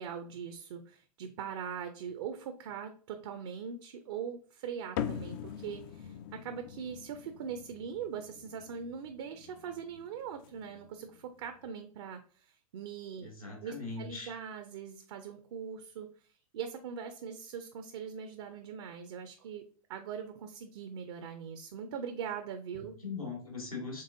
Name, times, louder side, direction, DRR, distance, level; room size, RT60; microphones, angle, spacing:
voice 1, 0.0-13.3 13.6-19.6 19.9-22.9, right 7 dB, 50° right, 7 dB, 0.5 m, -41 dB
sound 1, 5.0-11.7, left 10 dB, 40° left, 0.4 m, -43 dB
voice 2, 13.2-14.3 23.0-24.0, left 4 dB, 85° left, 0 dB, 1.8 m, -40 dB
5.3 x 3.5 x 2.6 m, 0.42 s
figure-of-eight pair, 100°, 18 cm